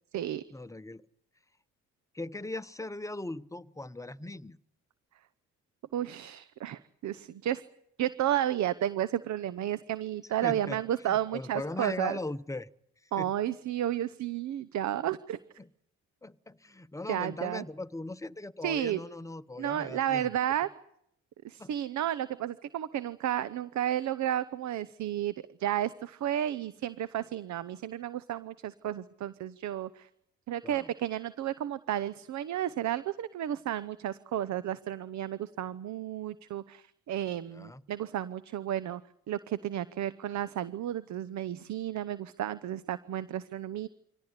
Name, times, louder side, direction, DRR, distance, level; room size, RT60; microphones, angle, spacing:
voice 1, 0.5-1.0 2.1-4.6 10.4-12.7 13.0-13.3 15.6-15.7 16.2-20.3 21.6-21.7 30.6-30.9 37.5-37.8, left 2 dB, 10° left, 14 dB, 0.9 m, -39 dB
voice 2, 5.9-7.6 8.0-12.2 13.1-15.4 17.1-17.6 18.6-19.0 19.6-20.7 21.4-25.3 25.6-30.1 30.5-39.0 39.3-43.9, right 11 dB, 65° right, 16 dB, 0.9 m, -32 dB
24.5 x 17.5 x 9.8 m, 0.75 s
cardioid pair, 90°, 30 cm